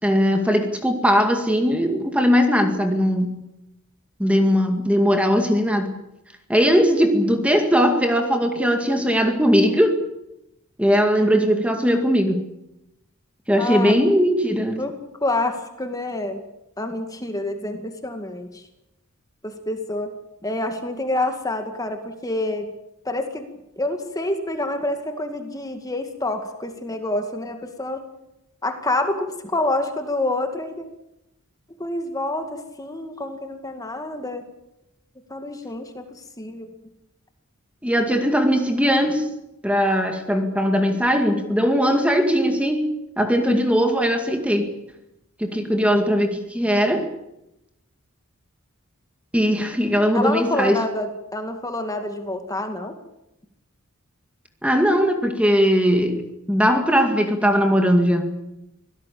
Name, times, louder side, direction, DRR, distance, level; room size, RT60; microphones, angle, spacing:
voice 1, 0.0-3.4 4.2-6.0 6.5-10.0 10.8-12.5 13.5-14.8 37.8-39.3 39.6-42.8 43.2-44.8 45.4-47.1 49.3-50.8 54.6-58.3, equal, 5° right, 5 dB, 2.1 m, -19 dB
voice 2, 13.6-14.0 14.8-14.9 15.2-16.4 16.8-18.6 19.4-20.1 20.4-22.7 23.0-28.0 28.6-30.8 31.8-34.4 35.3-36.7 50.1-53.0, left 2 dB, 15° left, 6 dB, 2.2 m, -27 dB
25.5 x 17.5 x 8.6 m, 0.88 s
head